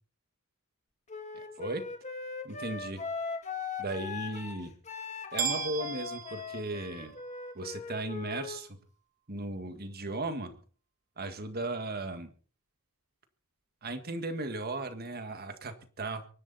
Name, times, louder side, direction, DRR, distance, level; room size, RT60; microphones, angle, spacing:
Wind instrument woodwind instrument, 1.1-8.6, left 5 dB, 35° left, 2.3 m, -39 dB
voice 1, 2.4-3.0 3.8-4.7 5.3-7.1 7.5-8.8 9.3-10.6 11.2-12.3 13.8-16.3, right 2 dB, 45° right, 8 dB, 1.8 m, -36 dB
sound 1, 5.4-7.4, right 9 dB, 90° right, 3.5 m, -36 dB
23.5 x 12.0 x 4.2 m, 0.41 s
head